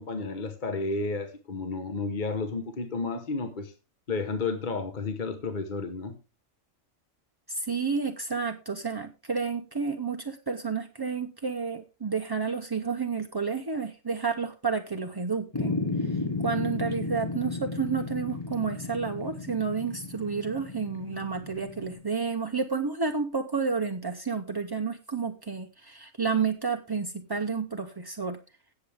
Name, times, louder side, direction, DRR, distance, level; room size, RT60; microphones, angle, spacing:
voice 1, 0.0-3.7 4.1-6.1, left 3 dB, 40° left, 1.1 m, -32 dB
voice 2, 7.5-15.8 16.1-28.4, right 5 dB, 30° right, 0.4 m, -30 dB
sound 1, 15.5-22.0, left 3 dB, 20° left, 1.1 m, -34 dB
17.0 x 6.7 x 3.4 m
omnidirectional pair, 1.4 m